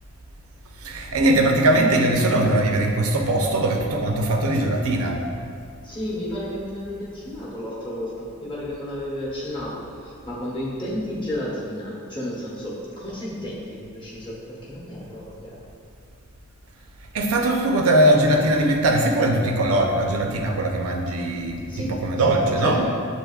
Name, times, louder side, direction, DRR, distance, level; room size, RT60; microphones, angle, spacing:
voice 1, 0.8-5.2 17.1-22.8, right 1 dB, 75° right, 2 dB, 0.5 m, -20 dB
voice 2, 5.8-15.6 21.7-22.9, equal, 20° left, -6 dB, 0.9 m, -32 dB
7.6 x 2.8 x 2.3 m, 2.2 s
head